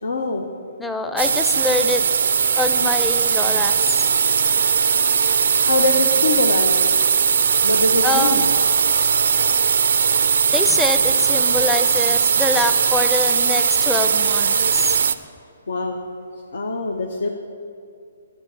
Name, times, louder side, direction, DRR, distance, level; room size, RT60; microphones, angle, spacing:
voice 1, 0.0-0.4 5.6-7.0 7.6-8.4 15.7-16.0 16.5-17.3, left 2 dB, 75° left, 3 dB, 0.8 m, -23 dB
voice 2, 0.8-2.0 2.5-4.0 8.0-8.5 10.5-15.0, left 2 dB, 5° left, 6 dB, 0.5 m, -24 dB
sound 1, 1.2-15.1, right 6 dB, 70° right, 0.4 m, -19 dB
12.0 x 5.0 x 7.4 m, 2.4 s
hypercardioid pair, 140°, 0 cm